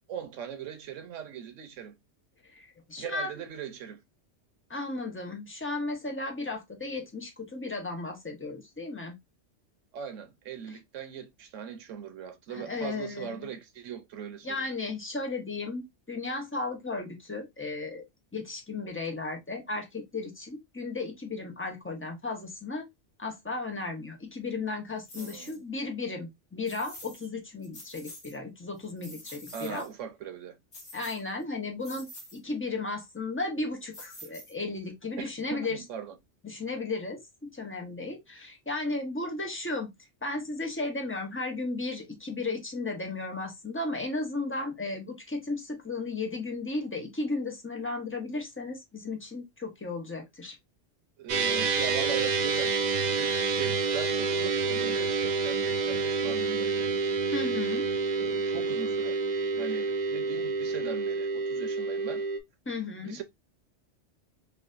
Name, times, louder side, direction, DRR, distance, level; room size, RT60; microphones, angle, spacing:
voice 1, 0.1-1.9 3.0-4.0 9.9-14.7 25.2-25.6 29.5-30.6 35.2-35.3 35.5-36.2 51.2-56.9 58.2-59.2 59.5-62.2 63.0-63.2, right 8 dB, 85° right, 1.1 m, -40 dB
voice 2, 2.4-3.4 4.7-9.1 10.7-10.8 12.5-13.5 14.4-18.0 18.3-22.9 23.2-29.9 30.9-35.8 36.4-39.9 40.2-50.5 57.3-57.9 62.7-63.2, left 3 dB, 15° left, 0.6 m, -35 dB
sound 1, 25.1-25.6 26.7-27.3 27.6-28.4 28.8-29.9 30.7-31.4 31.8-32.4 33.9-34.8, left 1 dB, 55° left, 1.7 m, -47 dB
sound 2, 51.3-62.4, right 4 dB, 50° right, 0.5 m, -28 dB
4.0 x 2.6 x 2.5 m
omnidirectional pair, 1.2 m